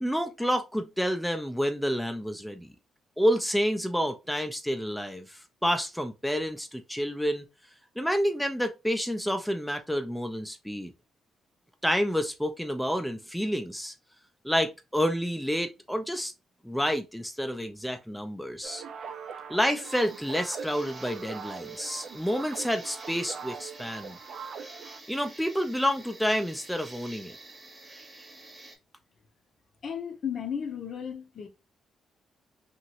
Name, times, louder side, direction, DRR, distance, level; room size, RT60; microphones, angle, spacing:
voice 1, 0.0-2.7 3.2-7.4 8.0-10.9 11.8-13.9 14.4-16.3 16.6-18.8 19.5-24.2 25.1-27.4, equal, ahead, 0.4 m, -29 dB
sound 1, 18.6-25.0, right 6 dB, 60° right, 0.4 m, -42 dB
sound 2, 19.8-28.8, right 2 dB, 25° right, 0.9 m, -49 dB
voice 2, 29.8-31.5, left 8 dB, 55° left, 0.6 m, -34 dB
2.9 x 2.5 x 2.8 m
cardioid pair, 90°, 0 cm